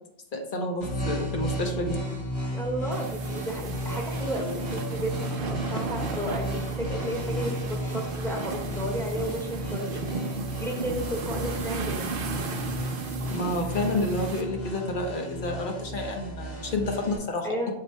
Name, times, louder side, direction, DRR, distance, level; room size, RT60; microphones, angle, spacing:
voice 1, 0.3-2.0 13.3-17.5, left 2 dB, 55° left, 2 dB, 1.1 m, -29 dB
sound 1, 0.8-17.2, equal, 80° left, 2.7 m, -34 dB
voice 2, 2.5-12.1 17.4-17.7, equal, 5° left, -1 dB, 1.6 m, -33 dB
sound 2, 2.9-14.4, right 4 dB, 65° right, 0.9 m, -35 dB
7.4 x 7.0 x 2.2 m, 0.83 s
omnidirectional pair, 1.0 m